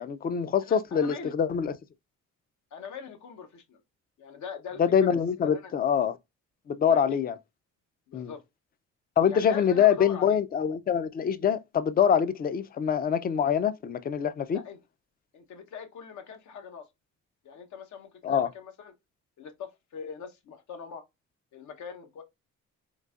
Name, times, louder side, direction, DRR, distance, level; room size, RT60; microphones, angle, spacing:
voice 1, 0.0-1.8 4.8-6.2 6.7-7.4 8.1-8.3 9.2-14.6 18.2-18.5, left 8 dB, 30° left, 0.4 m, -25 dB
voice 2, 0.6-1.3 2.7-3.8 4.2-5.7 6.9-7.2 8.1-8.4 9.3-10.4 14.5-14.8 15.3-16.9 17.4-18.9 19.4-21.0 21.5-22.2, left 6 dB, 70° left, 0.8 m, -42 dB
3.8 x 2.7 x 2.3 m
cardioid pair, 90°, 30 cm